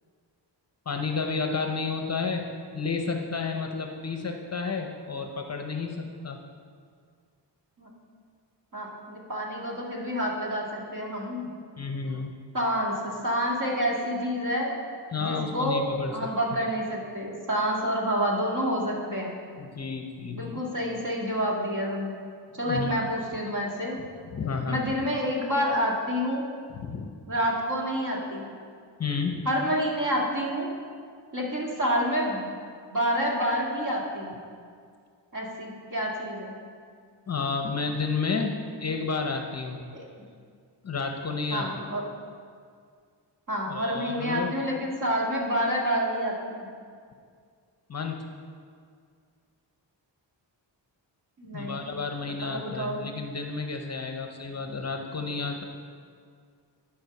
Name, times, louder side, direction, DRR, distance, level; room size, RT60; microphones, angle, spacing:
voice 1, 0.9-6.4 11.8-12.3 15.1-16.2 19.6-20.6 22.7-23.1 24.3-24.9 26.7-27.2 29.0-29.5 37.3-39.9 40.8-41.8 43.7-44.5 47.9-48.3 51.5-55.6, left 4 dB, 35° left, 4 dB, 0.7 m, -31 dB
voice 2, 8.7-11.5 12.5-14.7 15.1-15.8 16.1-19.3 20.3-22.2 22.6-24.0 24.7-26.4 27.3-28.5 29.5-30.7 31.3-32.5 32.9-34.4 35.3-36.5 39.9-40.0 41.5-42.0 43.5-46.7 51.4-51.8 52.2-53.0, equal, 45° right, -3 dB, 1.9 m, -28 dB
11.0 x 4.9 x 5.9 m, 2.1 s
wide cardioid pair, 120°, 43 cm